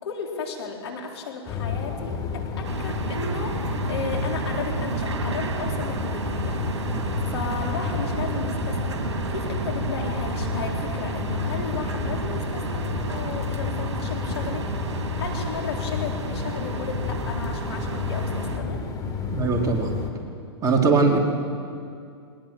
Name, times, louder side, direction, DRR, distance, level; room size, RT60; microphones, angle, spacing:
voice 1, 0.0-6.6 6.9-9.0 9.3-14.7 15.2-18.8, left 5 dB, 70° left, 1 dB, 3.9 m, -34 dB
sound 1, 1.5-20.1, left 5 dB, 25° left, 3.2 m, -31 dB
sound 2, 2.6-18.6, right 5 dB, 80° right, 2.3 m, -32 dB
voice 2, 19.3-19.9 20.6-21.2, right 4 dB, 25° right, 1 dB, 2.8 m, -21 dB
22.0 x 19.0 x 7.4 m, 2.4 s
hypercardioid pair, 105°, 14 cm